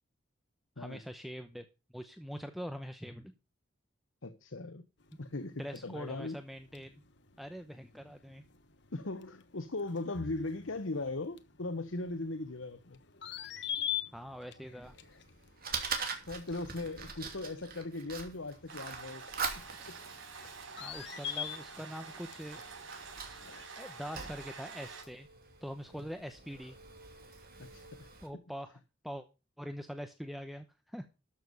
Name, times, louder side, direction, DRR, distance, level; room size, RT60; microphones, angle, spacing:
voice 1, 0.8-1.6 1.9-3.4 5.6-7.0 7.4-8.4 14.1-15.0 20.8-22.9 23.3-23.4 23.8-25.3 25.6-26.8 27.3-27.5 28.2-28.8 29.0-29.3 29.6-31.1, equal, ahead, 0.8 m, -43 dB
voice 2, 4.2-4.9 5.2-6.4 8.9-13.0 16.3-19.2 19.9-20.0 27.6-28.1, left 2 dB, 80° left, 1.1 m, -39 dB
sound 1, 5.0-23.7, left 10 dB, 60° left, 1.2 m, -46 dB
Fire, 14.8-28.3, right 5 dB, 45° right, 2.6 m, -44 dB
sound 2, 18.7-25.0, right 4 dB, 80° right, 4.3 m, -48 dB
13.0 x 7.1 x 5.3 m
head